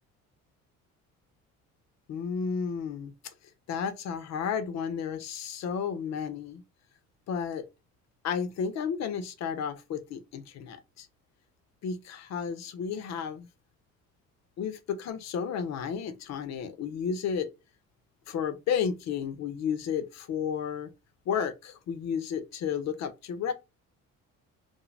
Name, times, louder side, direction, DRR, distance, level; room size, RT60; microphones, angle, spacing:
voice 1, 2.1-3.1 3.7-6.6 7.3-7.6 8.2-11.1 11.8-13.5 14.6-17.5 18.3-20.9 21.3-23.5, left 7 dB, 60° left, 0.6 m, -32 dB
2.5 x 2.1 x 3.1 m
cardioid pair, 95°, 30 cm